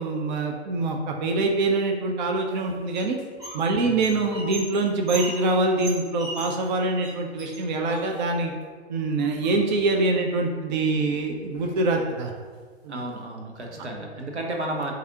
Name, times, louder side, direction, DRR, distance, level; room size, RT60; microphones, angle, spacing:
voice 1, 0.0-3.2 3.5-8.5 8.9-12.3 12.8-13.0, right 2 dB, 45° right, 2 dB, 0.4 m, -24 dB
sound 1, 2.5-3.7 3.9-6.7 7.0-7.1 7.4-8.5 9.2-9.9 11.0-11.1 11.4-11.9 12.3-12.6 13.0-13.1 13.6-14.4, right 1 dB, 10° right, 1.1 m, -39 dB
voice 2, 3.8-4.3 12.9-14.9, right 1 dB, 85° right, 1 dB, 0.8 m, -33 dB
4.6 x 2.4 x 2.7 m, 1.5 s
figure-of-eight pair, 115°, 33 cm